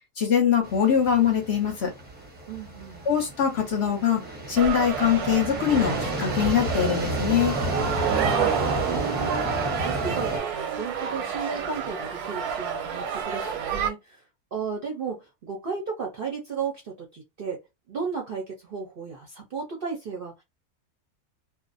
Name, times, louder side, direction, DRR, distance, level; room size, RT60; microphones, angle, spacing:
voice 1, 0.2-1.9 3.1-4.2 4.5-7.6, left 8 dB, 55° left, 0.8 m, -23 dB
sound 1, 0.6-10.4, right 1 dB, 10° right, 0.5 m, -32 dB
voice 2, 2.5-3.1 8.1-9.5 9.8-14.2 14.5-17.6 17.9-20.4, right 5 dB, 60° right, 0.6 m, -34 dB
sound 2, 4.6-13.9, right 7 dB, 90° right, 1.1 m, -29 dB
2.5 x 2.0 x 2.5 m
omnidirectional pair, 1.5 m